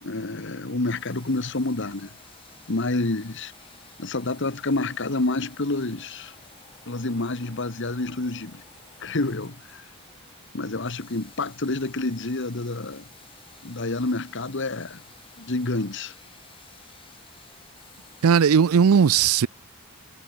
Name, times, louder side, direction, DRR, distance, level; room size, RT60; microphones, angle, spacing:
voice 1, 0.0-2.2 2.7-3.5 4.0-6.3 6.8-8.6 9.0-9.9 10.5-13.1 13.6-15.0 15.4-16.1, left 2 dB, 55° left, 1.5 m, -28 dB
sound 1, 0.8-18.6, left 5 dB, 25° left, 6.6 m, -55 dB
voice 2, 18.2-19.5, right 6 dB, 80° right, 0.5 m, -17 dB
head